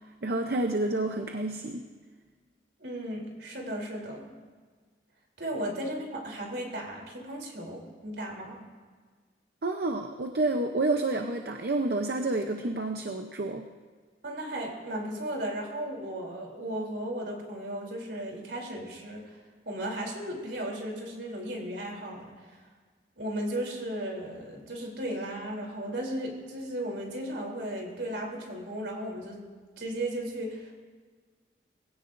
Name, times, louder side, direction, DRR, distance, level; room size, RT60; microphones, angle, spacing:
voice 1, 0.2-1.9 9.6-13.7, right 2 dB, 60° right, 4 dB, 0.7 m, -29 dB
voice 2, 2.8-4.3 5.4-8.6 14.2-22.6 23.2-29.5 29.8-30.7, right 1 dB, 75° right, 0 dB, 3.3 m, -35 dB
21.5 x 16.5 x 2.6 m, 1.6 s
head